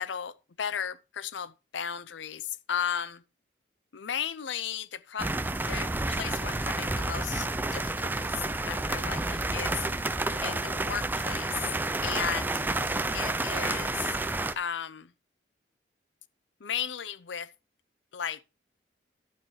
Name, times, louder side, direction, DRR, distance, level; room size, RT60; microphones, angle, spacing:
voice 1, 0.0-3.2 3.9-5.3 5.7-8.3 8.6-9.9 10.4-11.7 12.0-12.5 13.1-14.2 14.6-15.1 16.6-17.5 18.1-18.4, left 8 dB, 80° left, 0.6 m, -35 dB
sound 1, 5.2-14.5, right 2 dB, 10° right, 0.4 m, -30 dB
11.5 x 8.8 x 3.2 m
head